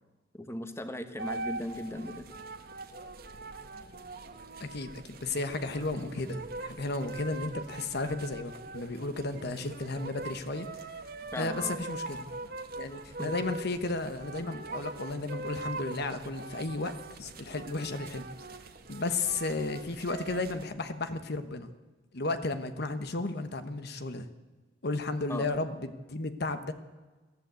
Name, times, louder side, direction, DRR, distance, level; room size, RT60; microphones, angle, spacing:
voice 1, 0.3-2.3 11.3-11.8 13.2-13.3 25.3-25.5, left 1 dB, 15° left, 8 dB, 1.4 m, -38 dB
sound 1, 1.2-20.7, right 3 dB, 55° right, 1.4 m, -42 dB
voice 2, 4.6-10.7 11.4-12.3 12.8-16.9 17.2-18.3 18.9-21.7 22.1-24.3 24.8-26.7, left 3 dB, 60° left, 9 dB, 1.2 m, -34 dB
22.5 x 14.5 x 8.2 m, 1.3 s
head